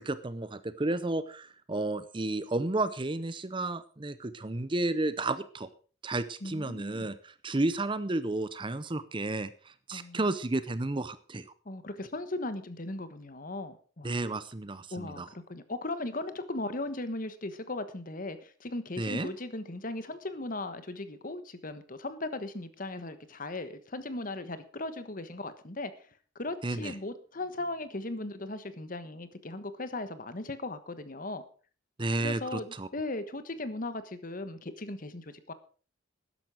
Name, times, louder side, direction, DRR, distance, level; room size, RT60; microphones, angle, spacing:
voice 1, 0.0-5.7 6.0-11.5 14.0-15.3 19.0-19.3 26.6-26.9 32.0-32.9, right 2 dB, 25° right, 14 dB, 0.7 m, -32 dB
voice 2, 6.4-7.1 9.9-10.2 11.6-14.2 14.9-25.9 26.3-31.4 32.2-35.5, left 2 dB, 45° left, 12 dB, 1.3 m, -37 dB
13.0 x 10.5 x 4.9 m, 0.40 s
head